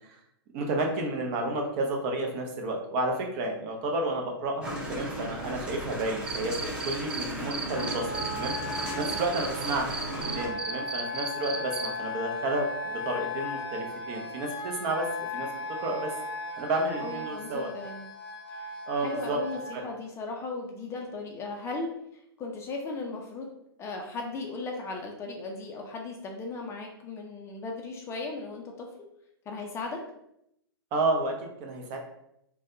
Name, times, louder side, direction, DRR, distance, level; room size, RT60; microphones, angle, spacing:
voice 1, 0.5-6.5 6.8-8.5 8.9-12.7 13.0-15.0 15.3-15.5 15.8-16.1 16.6-17.7 18.9-19.4 19.7-19.8 30.9-31.3 31.6-32.0, right 2 dB, 40° right, 2 dB, 0.7 m, -31 dB
sound 1, 4.6-10.5, equal, 10° right, 0.8 m, -36 dB
Cricket, 6.3-7.2 7.5-11.9, right 5 dB, 80° right, 0.5 m, -34 dB
Wind instrument woodwind instrument, 7.7-19.8, left 2 dB, 85° left, 0.7 m, -37 dB
voice 2, 17.0-18.1 19.0-21.9 22.4-23.5 23.8-28.9 29.5-30.0, left 3 dB, 20° left, 1 dB, 0.4 m, -37 dB
3.3 x 2.2 x 2.6 m, 0.78 s
hypercardioid pair, 115°, 13 cm